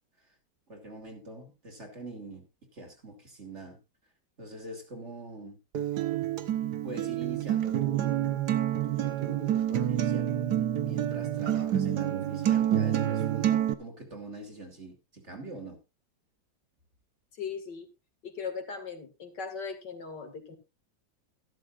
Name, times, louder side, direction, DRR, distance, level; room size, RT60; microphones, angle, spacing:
voice 1, 0.7-2.4 2.7-3.8 4.4-5.6 6.8-8.4 8.8-10.3 10.8-15.8, right 2 dB, 40° right, 4 dB, 3.0 m, -44 dB
Acoustic guitar, 5.7-13.7, right 11 dB, 65° right, 1.5 m, -28 dB
voice 2, 17.4-17.9 18.2-20.6, left 5 dB, 65° left, 5 dB, 2.7 m, -38 dB
14.0 x 12.5 x 2.5 m, 0.25 s
omnidirectional pair, 2.0 m